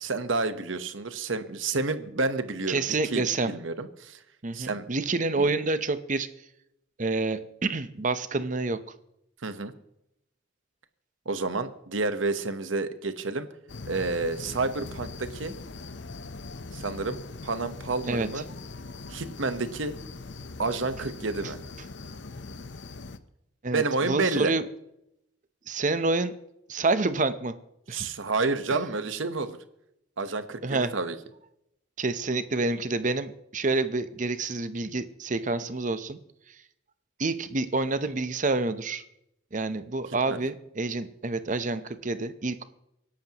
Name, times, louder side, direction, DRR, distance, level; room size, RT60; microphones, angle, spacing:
voice 1, 0.0-4.2 4.5-4.9 5.4-5.5 9.4-9.7 11.2-13.5 13.9-15.5 16.7-18.4 19.1-19.9 20.6-21.6 23.7-24.5 27.9-29.6 30.2-31.2 40.3-40.4, right 3 dB, 85° right, 10 dB, 1.1 m, -29 dB
voice 2, 2.7-3.5 4.4-6.3 7.0-8.8 18.1-18.3 23.6-24.6 25.7-26.3 26.7-27.5 27.9-28.1 28.7-28.8 30.6-30.9 32.0-36.2 37.2-39.0 39.5-42.6, right 3 dB, 40° right, 12 dB, 0.8 m, -28 dB
sound 1, 13.7-23.2, left 3 dB, 65° left, 0.8 m, -41 dB
24.5 x 11.5 x 3.0 m, 0.81 s
head